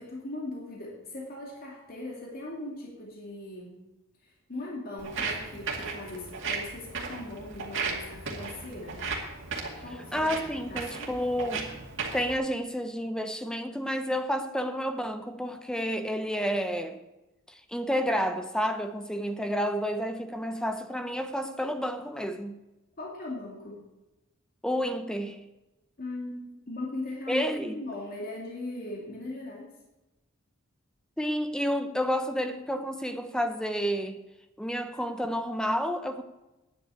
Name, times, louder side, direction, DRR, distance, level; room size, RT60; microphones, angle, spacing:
voice 1, 0.0-3.8 4.2-9.0 9.8-11.1 23.0-23.8 26.0-27.5 27.7-29.8, left 2 dB, 45° left, 2.5 m, -39 dB
Walk footsteps, 5.0-12.3, right 4 dB, 60° right, 2.3 m, -36 dB
voice 2, 10.1-11.7 12.1-17.0 17.5-22.6 24.6-25.4 27.3-27.8 31.2-34.2 34.6-36.2, equal, 5° left, 0.8 m, -30 dB
10.0 x 8.0 x 8.4 m
head